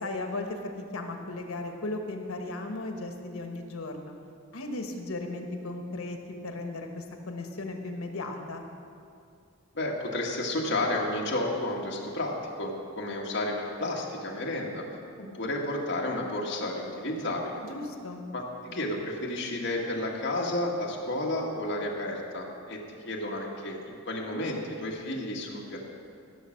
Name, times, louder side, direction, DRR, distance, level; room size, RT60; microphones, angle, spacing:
voice 1, 0.0-4.1 4.5-6.2 6.4-8.7 17.6-18.3, left 2 dB, 90° left, 4 dB, 1.2 m, -36 dB
voice 2, 9.7-14.8 15.2-17.6 18.3-22.8 23.0-25.9, left 1 dB, 55° left, -1 dB, 1.6 m, -32 dB
15.0 x 6.2 x 6.4 m, 2.4 s
head